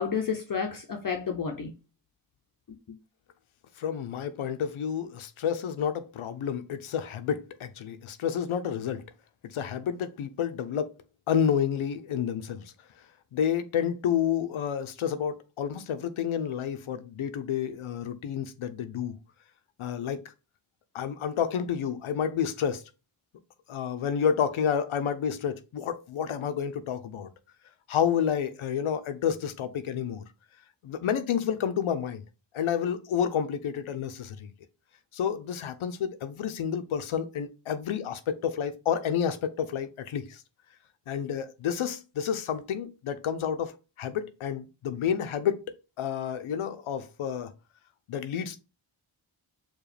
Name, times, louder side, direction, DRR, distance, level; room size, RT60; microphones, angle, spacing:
voice 1, 0.0-1.7 2.7-3.0, left 6 dB, 45° left, 0.6 m, -31 dB
voice 2, 3.8-9.0 9.4-10.9 11.3-12.6 13.3-19.2 19.8-20.2 20.9-22.8 23.7-27.3 27.9-30.2 30.8-32.2 32.5-34.5 35.1-40.4 41.1-45.6 46.0-47.5 48.1-48.6, left 8 dB, 85° left, 0.6 m, -30 dB
4.8 x 2.3 x 3.2 m
wide cardioid pair, 65°, 48 cm